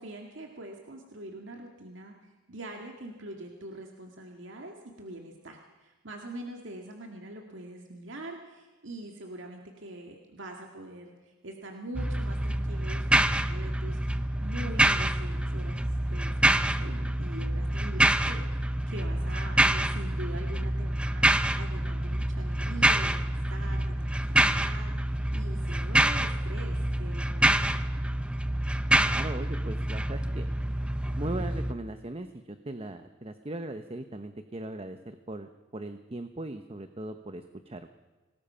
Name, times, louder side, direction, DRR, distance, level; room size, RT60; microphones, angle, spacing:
voice 1, 0.0-27.8, right 1 dB, 75° right, 2 dB, 2.1 m, -43 dB
sound 1, 11.9-31.7, right 1 dB, 5° right, 0.6 m, -27 dB
voice 2, 29.0-30.5 31.2-37.9, right 2 dB, 30° right, 8 dB, 0.9 m, -39 dB
25.5 x 19.5 x 5.7 m, 1.2 s
head